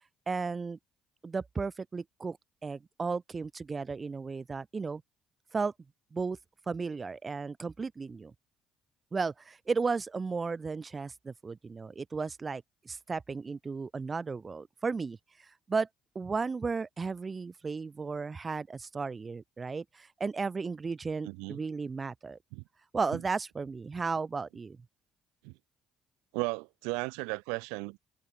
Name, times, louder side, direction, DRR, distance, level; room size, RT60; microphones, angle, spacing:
voice 1, 0.3-0.8 1.2-2.4 2.6-5.0 5.5-5.7 6.1-6.4 6.7-8.3 9.1-15.9 16.1-22.4 22.9-24.8, right 4 dB, 30° right, 1.6 m, -34 dB
voice 2, 21.3-21.6 22.5-22.6 25.4-25.5 26.3-28.0, right 32 dB, 75° right, 2.3 m, -35 dB
hypercardioid pair, 55°, 0 cm